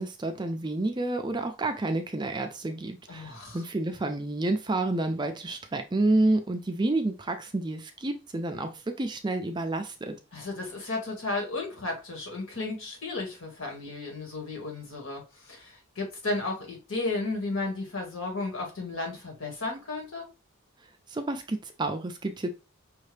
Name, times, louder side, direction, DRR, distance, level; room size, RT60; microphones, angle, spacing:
voice 1, 0.0-8.7 9.0-10.1 21.1-22.5, right 2 dB, 20° right, 0.4 m, -29 dB
voice 2, 3.1-3.6 10.3-20.3, left 2 dB, 70° left, 1.8 m, -34 dB
5.6 x 2.7 x 3.3 m
head